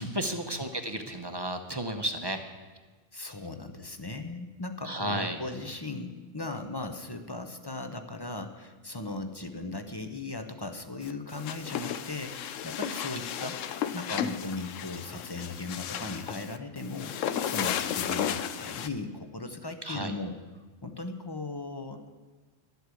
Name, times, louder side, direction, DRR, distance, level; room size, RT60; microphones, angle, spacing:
voice 1, 0.0-2.4 4.8-5.4 19.8-20.1, right 1 dB, 25° right, 6 dB, 0.7 m, -33 dB
voice 2, 3.1-13.6 13.9-20.4 20.8-22.1, left 2 dB, 25° left, 7 dB, 0.7 m, -38 dB
sound 1, 11.0-18.9, left 9 dB, 80° left, 1.0 m, -34 dB
12.0 x 8.2 x 8.3 m, 1.3 s
omnidirectional pair, 1.3 m